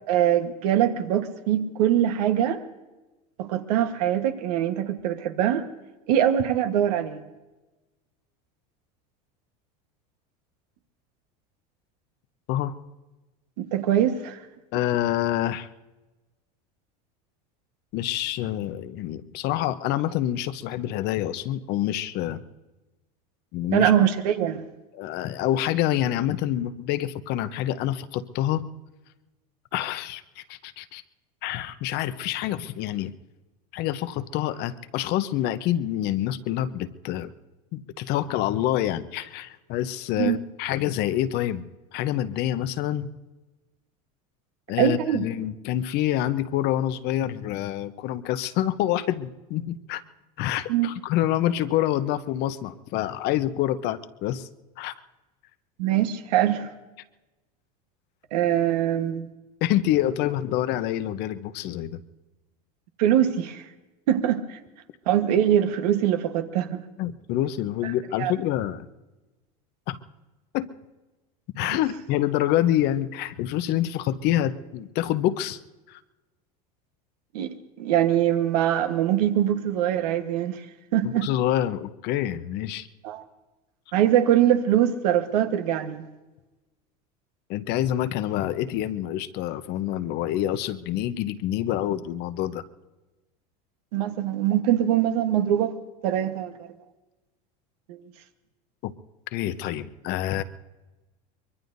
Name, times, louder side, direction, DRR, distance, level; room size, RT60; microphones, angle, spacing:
voice 1, 0.1-2.6 3.4-5.7 6.1-7.3 13.6-14.4 23.7-24.6 40.2-40.4 44.8-45.3 50.7-50.9 55.8-56.7 58.3-59.3 63.0-63.6 64.1-64.4 65.1-66.8 68.2-68.3 77.3-80.6 80.9-81.3 83.0-83.2 83.9-86.0 93.9-95.7 96.0-96.7 97.9-98.0, right 11 dB, 75° right, 7 dB, 1.3 m, -23 dB
voice 2, 14.7-15.7 17.9-22.4 23.5-23.9 24.9-28.7 29.7-31.0 31.4-33.1 33.7-37.3 37.7-43.1 44.7-50.0 50.4-54.5 54.8-54.9 59.6-62.0 67.0-68.9 69.9-70.0 70.5-70.7 71.5-75.6 75.9-76.0 81.0-82.9 87.5-92.6 98.8-98.9 99.3-100.4, left 12 dB, 55° left, 12 dB, 0.8 m, -27 dB
24.0 x 22.0 x 2.7 m, 1.1 s
supercardioid pair, 105°, 20 cm